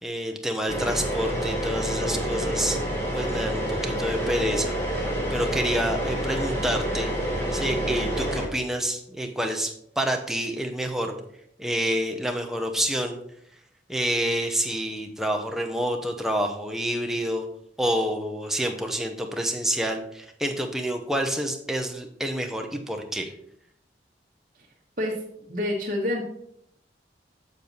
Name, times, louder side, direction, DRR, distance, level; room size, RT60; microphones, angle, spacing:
voice 1, 0.0-2.8 3.1-4.7 5.3-7.1 7.5-11.2 11.6-13.2 13.9-17.5 17.8-23.3, equal, ahead, 3 dB, 0.8 m, -28 dB
sound 1, 0.7-8.5, right 1 dB, 15° left, 1.9 m, -28 dB
voice 2, 25.5-26.2, left 1 dB, 45° right, -5 dB, 1.4 m, -27 dB
7.2 x 6.8 x 4.0 m, 0.71 s
head